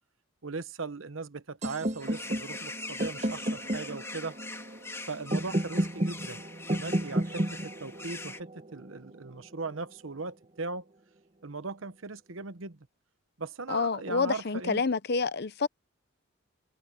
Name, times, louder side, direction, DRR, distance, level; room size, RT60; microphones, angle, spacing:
voice 1, 0.4-4.4 5.1-6.4 6.7-10.9 11.4-12.8 13.4-14.8, right 3 dB, 75° right, 1.1 m, -38 dB
sound 1, 1.6-9.5, right 1 dB, 35° right, 1.4 m, -33 dB
sound 2, 2.0-8.4, left 3 dB, 15° left, 2.3 m, -43 dB
voice 2, 13.7-15.7, left 4 dB, 50° left, 0.7 m, -28 dB
head